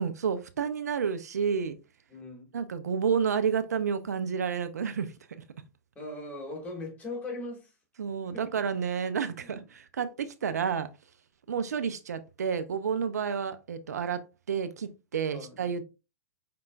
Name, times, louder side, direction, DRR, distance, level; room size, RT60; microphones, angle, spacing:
voice 1, 0.0-1.8 2.5-5.4 8.0-10.9 11.5-14.2 14.5-15.8, right 6 dB, 75° right, 0.6 m, -30 dB
voice 2, 2.1-2.5 6.0-7.7 8.3-8.5 9.4-9.6 15.3-15.6, left 2 dB, 15° left, 2.3 m, -39 dB
5.6 x 3.7 x 2.4 m
figure-of-eight pair, 105°, 9 cm